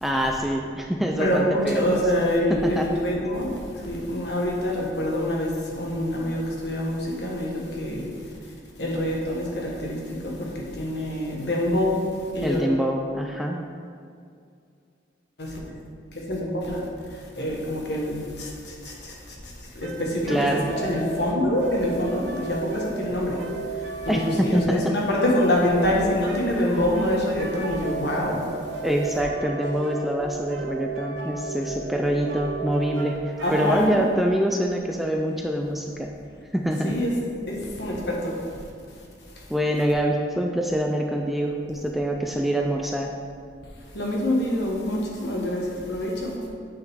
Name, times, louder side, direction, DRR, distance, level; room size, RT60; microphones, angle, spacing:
voice 1, 0.0-2.0 2.5-2.9 12.4-13.6 20.3-20.6 24.1-24.9 28.8-36.1 36.5-36.9 39.5-43.1, equal, ahead, 1 dB, 0.4 m, -25 dB
voice 2, 1.2-8.1 8.4-8.5 8.8-12.0 12.3-12.7 15.4-15.7 16.1-16.8 17.1-28.4 33.4-34.0 36.8-37.1 37.4-38.6 39.4-39.5 43.9-46.4, left 1 dB, 65° left, -2 dB, 1.5 m, -26 dB
sound 1, 19.8-34.1, right 3 dB, 70° right, 0.7 m, -35 dB
8.9 x 5.6 x 3.6 m, 2.3 s
head